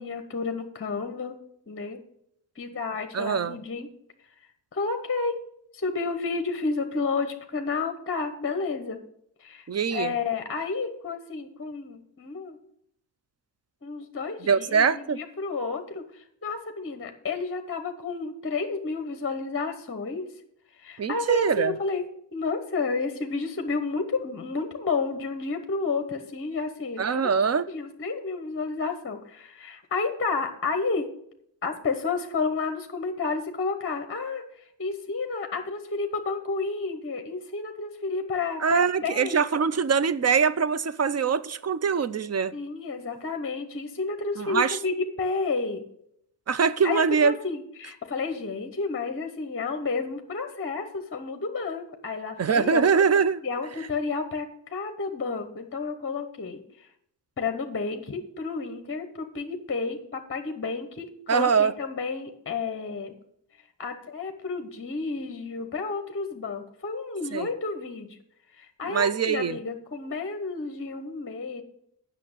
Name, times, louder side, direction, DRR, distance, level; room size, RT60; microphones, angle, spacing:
voice 1, 0.0-1.3 1.7-2.0 2.6-3.9 4.7-5.3 5.7-9.0 9.4-12.6 13.8-20.3 20.8-22.0 22.3-27.3 27.7-31.0 31.6-39.6 41.0-41.2 42.5-45.8 46.8-52.9 53.4-56.9 57.4-63.1 63.8-68.2 68.5-71.6, left 4 dB, 30° left, 0.9 m, -31 dB
voice 2, 3.1-3.6 9.7-10.1 14.4-15.2 21.0-21.7 27.0-27.7 38.6-42.5 44.4-44.8 46.5-47.3 52.4-53.4 61.3-61.7 67.3-67.5 68.8-69.6, right 6 dB, 40° right, 0.5 m, -23 dB
8.4 x 6.3 x 6.6 m
wide cardioid pair, 100°, 42 cm